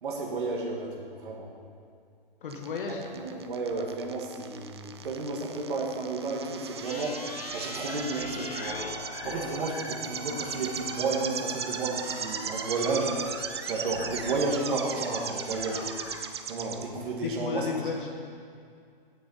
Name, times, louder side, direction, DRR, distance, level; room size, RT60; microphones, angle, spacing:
voice 1, 0.0-1.5 2.9-8.9 9.2-15.9 16.5-17.9, right 3 dB, 60° right, -2 dB, 1.9 m, -32 dB
voice 2, 2.4-3.0 17.2-18.1, left 5 dB, 60° left, 1 dB, 1.5 m, -33 dB
sound 1, 2.5-16.8, right 7 dB, 30° right, 0.3 m, -37 dB
sound 2, 6.8-16.3, left 5 dB, 80° left, 0.9 m, -42 dB
9.8 x 7.5 x 5.6 m, 2.3 s
hypercardioid pair, 160°, 29 cm